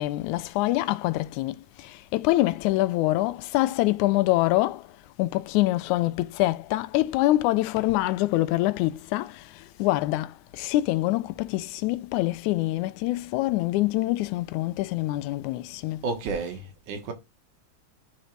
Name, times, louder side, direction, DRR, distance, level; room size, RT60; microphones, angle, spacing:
voice 1, 0.0-1.6 2.1-4.8 5.2-9.3 9.8-10.3 10.6-16.0, left 17 dB, 90° left, 2.0 m, -25 dB
voice 2, 16.0-17.1, right 4 dB, 90° right, 2.8 m, -31 dB
11.0 x 4.0 x 3.2 m
omnidirectional pair, 3.3 m